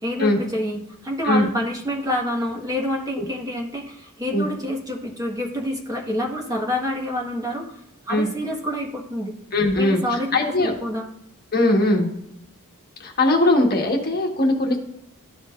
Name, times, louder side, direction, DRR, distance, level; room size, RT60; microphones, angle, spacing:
voice 1, 0.0-7.8 8.1-9.4 9.8-11.1, left 1 dB, 15° right, -2 dB, 1.5 m, -27 dB
voice 2, 9.5-10.0 10.3-10.7 11.5-12.1 13.0-14.8, left 1 dB, 45° left, 1 dB, 1.4 m, -20 dB
13.0 x 5.1 x 2.5 m, 0.80 s
head